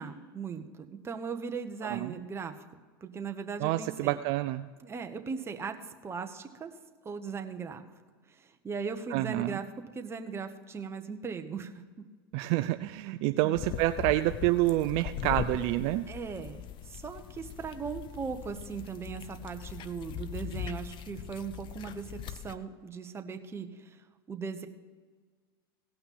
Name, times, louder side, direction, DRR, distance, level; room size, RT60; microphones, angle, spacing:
voice 1, 0.0-2.5 3.0-4.2 4.8-5.8 6.0-6.7 7.0-7.8 8.3-9.6 9.9-11.7 13.4-13.6 16.1-24.0 24.3-24.7, right 5 dB, 20° right, 6 dB, 1.1 m, -38 dB
voice 2, 1.8-2.1 3.6-4.7 9.1-9.7 12.3-16.1, right 16 dB, 55° right, 10 dB, 0.5 m, -28 dB
sound 1, 13.5-22.5, left 10 dB, 40° left, 0.7 m, -40 dB
17.0 x 5.8 x 5.6 m, 1.5 s
hypercardioid pair, 110°, 13 cm